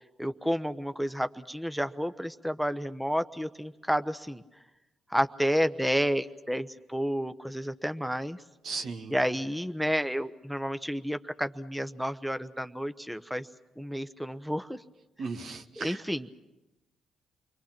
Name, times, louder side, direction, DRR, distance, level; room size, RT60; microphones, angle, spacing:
voice 1, 0.2-4.4 5.1-8.4 9.1-13.5 13.8-14.8 15.8-16.3, equal, ahead, 10 dB, 0.9 m, -30 dB
voice 2, 8.6-9.1 15.2-16.0, right 4 dB, 65° right, 5 dB, 1.7 m, -36 dB
29.0 x 23.0 x 6.0 m, 1.0 s
hypercardioid pair, 50°, 0 cm